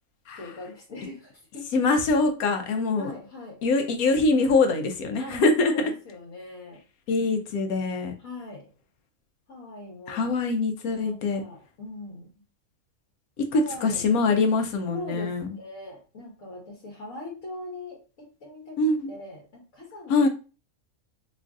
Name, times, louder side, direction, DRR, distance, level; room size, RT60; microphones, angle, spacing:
voice 1, 0.4-1.7 2.5-2.6 3.0-3.6 5.2-6.8 8.2-8.7 9.5-10.3 10.9-12.3 13.5-14.1 14.9-18.8 19.1-20.3, left 2 dB, 70° left, -3 dB, 1.4 m, -41 dB
voice 2, 1.7-3.1 3.6-5.7 7.1-8.1 10.1-11.4 13.5-15.5 18.8-19.1 20.1-20.3, left 3 dB, 85° left, 6 dB, 1.1 m, -23 dB
3.1 x 2.5 x 3.5 m, 0.34 s
omnidirectional pair, 1.5 m